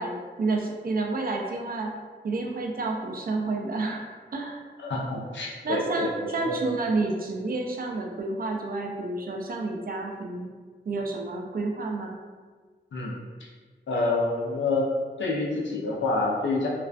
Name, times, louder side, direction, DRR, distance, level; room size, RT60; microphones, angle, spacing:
voice 1, 0.0-1.9 2.2-4.1 4.3-4.6 5.6-10.5 10.9-12.2, right 3 dB, 55° right, 1 dB, 0.4 m, -30 dB
voice 2, 4.8-6.1 6.4-6.5 12.9-13.1 13.9-14.8 15.2-16.7, left 3 dB, 90° left, -3 dB, 0.5 m, -27 dB
2.4 x 2.2 x 2.4 m, 1.5 s
wide cardioid pair, 65°, 18 cm